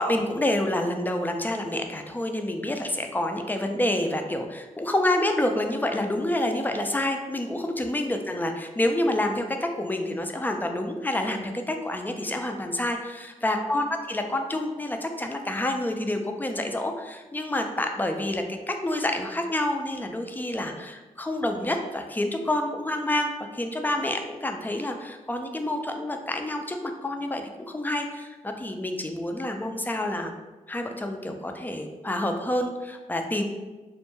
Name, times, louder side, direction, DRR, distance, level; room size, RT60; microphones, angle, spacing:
voice 1, 0.0-30.3 30.7-33.5, left 1 dB, 15° left, 4 dB, 0.3 m, -28 dB
2.2 x 2.1 x 3.0 m, 1.2 s
cardioid pair, 50°, 14 cm